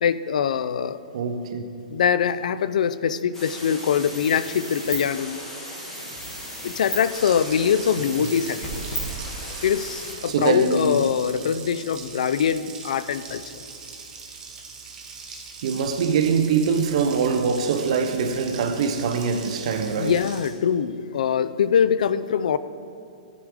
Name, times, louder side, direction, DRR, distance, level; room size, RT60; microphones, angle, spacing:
voice 1, 0.0-1.0 1.9-5.4 6.6-8.8 9.6-13.6 20.0-22.6, left 8 dB, 70° left, 0.3 m, -23 dB
voice 2, 1.1-1.6 8.2-8.3 10.3-11.1 15.6-20.2, right 5 dB, 50° right, 0.7 m, -23 dB
sound 1, 3.3-10.1, equal, 10° left, 1.8 m, -35 dB
Water tap faucet, 7.1-20.5, right 5 dB, 15° right, 0.8 m, -41 dB
11.0 x 5.0 x 4.9 m
hypercardioid pair, 155°, 4 cm